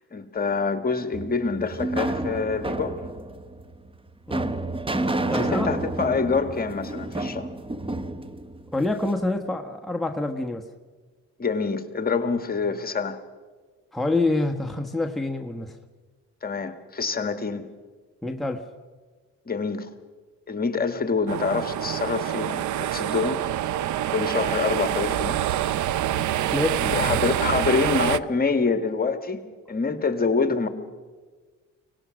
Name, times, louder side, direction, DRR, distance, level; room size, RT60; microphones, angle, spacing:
voice 1, 0.1-3.0 5.3-7.5 11.4-13.2 16.4-17.7 19.5-19.9 20.5-23.4 24.1-25.4 26.8-29.4 29.7-30.7, left 4 dB, 30° left, 9 dB, 1.9 m, -26 dB
sound 1, 1.1-9.2, right 2 dB, 15° right, 1.1 m, -30 dB
voice 2, 5.3-5.7 8.7-10.7 13.9-15.8 18.2-18.6 26.5-27.2, left 2 dB, ahead, 2 dB, 1.3 m, -27 dB
sound 2, 21.3-28.2, right 12 dB, 75° right, 0.7 m, -26 dB
24.0 x 18.5 x 6.4 m, 1.4 s
cardioid pair, 90°, 30 cm